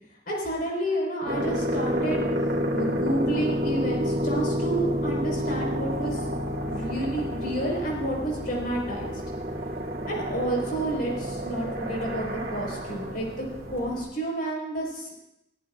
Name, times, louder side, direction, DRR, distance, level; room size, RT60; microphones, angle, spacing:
voice 1, 0.3-2.2 2.7-6.2 6.6-9.2 10.1-15.1, right 1 dB, 55° left, -2 dB, 4.8 m, -30 dB
sound 1, 1.3-14.0, equal, 60° right, 2.4 m, -29 dB
23.5 x 14.5 x 2.5 m, 0.87 s
head